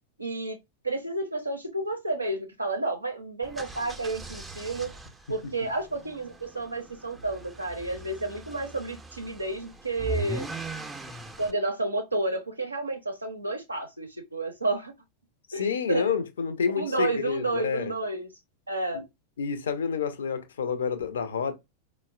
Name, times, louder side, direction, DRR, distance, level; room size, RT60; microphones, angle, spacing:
voice 1, 0.2-0.6 0.8-4.9 5.3-10.5 11.4-14.9 15.5-16.2 16.8-18.3 18.7-19.0, right 2 dB, 85° right, 0.4 m, -31 dB
sound 1, 3.4-11.5, right 4 dB, 10° right, 0.4 m, -40 dB
voice 2, 15.5-17.9 18.9-19.0 19.4-21.5, left 6 dB, 65° left, 0.4 m, -29 dB
3.9 x 2.0 x 2.4 m
figure-of-eight pair, 90°, 0 cm